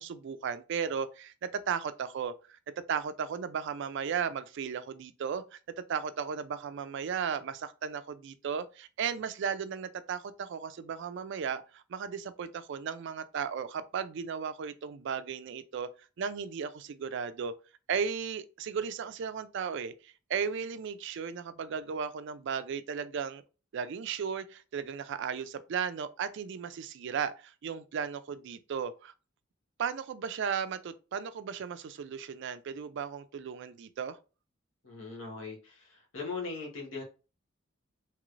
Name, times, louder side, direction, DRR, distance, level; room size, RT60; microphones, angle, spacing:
voice 1, 0.0-2.6 2.9-5.6 5.9-15.9 16.2-17.5 17.9-23.4 23.7-29.1 29.8-34.2, right 6 dB, 60° right, 0.3 m, -35 dB
voice 2, 34.8-37.0, left 4 dB, 70° left, 1.2 m, -40 dB
3.1 x 2.9 x 2.5 m
head